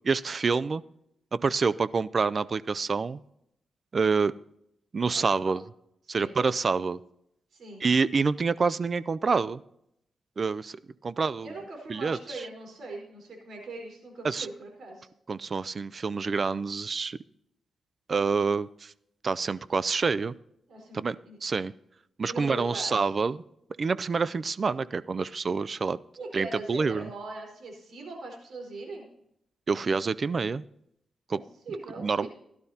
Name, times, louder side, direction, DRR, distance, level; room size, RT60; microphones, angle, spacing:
voice 1, 0.0-0.8 1.3-3.2 3.9-4.3 4.9-5.6 6.1-7.0 7.8-9.6 10.4-10.8 11.0-11.5 11.9-12.2 14.2-14.5 15.3-17.2 18.1-18.9 19.2-20.3 20.9-21.7 22.2-23.4 23.8-26.0 26.3-27.1 29.7-30.6 31.3-31.4 32.0-32.3, right 4 dB, 40° right, 17 dB, 0.4 m, -27 dB
voice 2, 5.1-5.5 6.1-6.4 7.5-7.9 11.4-15.1 20.7-21.4 22.3-23.1 26.2-29.0 31.3-32.3, right 2 dB, 70° right, 1 dB, 4.4 m, -41 dB
16.5 x 12.0 x 2.8 m, 0.77 s
cardioid pair, 110°, 0 cm